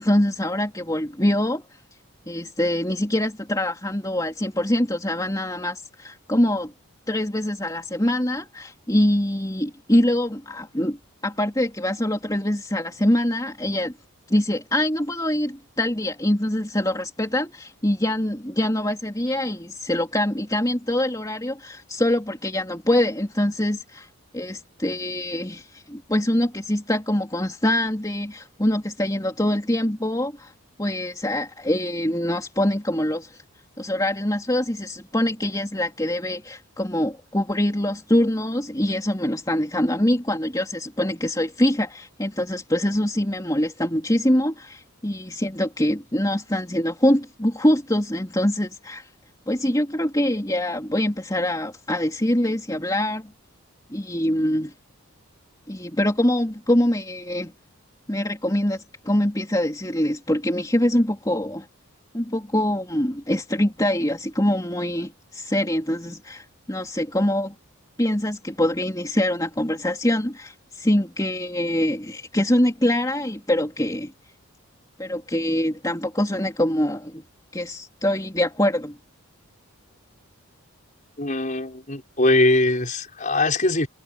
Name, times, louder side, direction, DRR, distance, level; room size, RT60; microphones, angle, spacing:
voice 1, 0.0-1.6 2.3-6.7 7.1-11.0 11.2-13.9 14.3-24.1 24.3-30.5 30.8-33.4 33.8-49.1 49.5-53.3 53.9-54.7 55.7-57.5 58.1-61.7 62.1-67.5 68.0-74.1 75.0-77.2 77.5-79.0, left 1 dB, 15° left, 3.2 m, -24 dB
voice 2, 81.2-83.9, left 2 dB, 35° left, 5.7 m, -21 dB
head